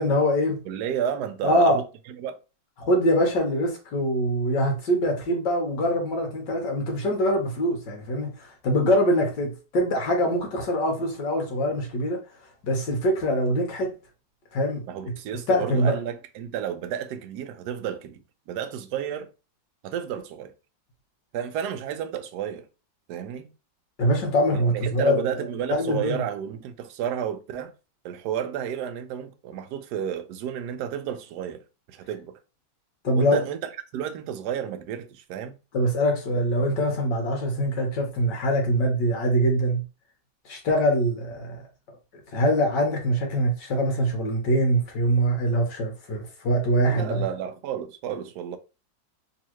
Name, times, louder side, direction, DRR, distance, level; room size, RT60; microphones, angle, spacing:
voice 1, 0.0-0.6 1.4-1.8 2.8-12.2 12.6-13.9 14.5-15.1 15.5-15.9 24.0-26.2 33.0-33.4 35.7-39.8 40.5-41.6 42.3-47.2, equal, 65° left, 1.8 m, -23 dB
voice 2, 0.7-1.8 2.2-2.4 14.9-18.2 18.5-19.3 19.8-20.5 21.3-22.7 23.1-23.5 24.5-27.7 28.0-31.6 31.9-32.4 33.2-33.6 33.9-35.6 46.9-48.6, right 9 dB, 75° right, 1.0 m, -31 dB
3.9 x 2.7 x 3.0 m
omnidirectional pair, 2.2 m